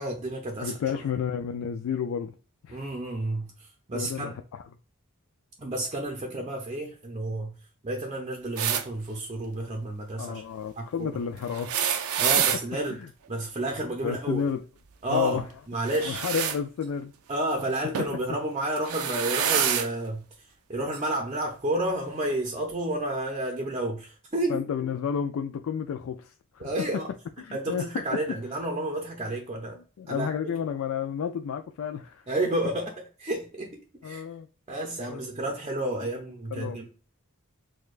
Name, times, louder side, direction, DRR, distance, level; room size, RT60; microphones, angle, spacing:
voice 1, 0.0-0.8 2.7-4.3 5.6-7.5 7.8-10.4 10.8-11.1 12.2-13.0 13.3-14.4 15.0-16.2 17.3-24.7 26.6-27.1 27.5-29.8 30.1-30.6 32.3-34.2 34.7-36.9, right 1 dB, 30° right, 0.6 m, -31 dB
voice 2, 0.6-2.3 2.6-2.8 3.9-4.3 10.2-12.1 13.0-13.1 14.0-14.6 15.1-15.4 16.0-17.1 24.5-26.7 27.4-27.9 30.0-32.2 34.0-34.5 35.1-35.2 36.0-36.1 36.5-36.9, left 7 dB, 75° left, 0.3 m, -31 dB
sound 1, 8.6-8.8 11.5-12.6 15.8-16.6 17.9-18.2 18.8-19.9 20.9-21.0 22.2-22.3, right 8 dB, 85° right, 0.5 m, -27 dB
6.3 x 2.2 x 2.4 m
head